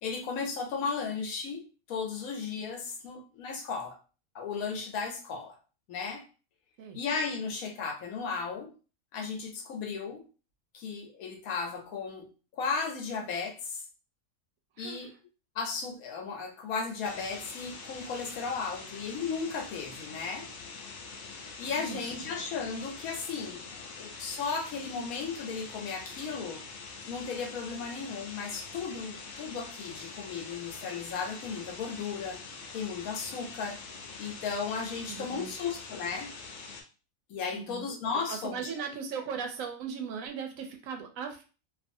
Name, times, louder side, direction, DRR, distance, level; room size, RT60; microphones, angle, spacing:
voice 1, 0.0-1.6 1.9-4.0 4.3-5.6 5.9-6.2 6.9-8.7 9.1-10.3 10.7-13.8 14.8-15.1 15.5-20.5 21.6-26.6 27.0-32.4 32.7-33.8 34.2-36.3 37.3-38.7, left 5 dB, 90° left, 3 dB, 1.2 m, -35 dB
sound 1, 17.0-36.8, left 4 dB, 65° left, 0.9 m, -44 dB
voice 2, 35.1-35.5 37.5-37.8 38.3-41.4, right 6 dB, 75° right, 5 dB, 1.0 m, -38 dB
2.5 x 2.5 x 2.6 m, 0.35 s
omnidirectional pair, 1.4 m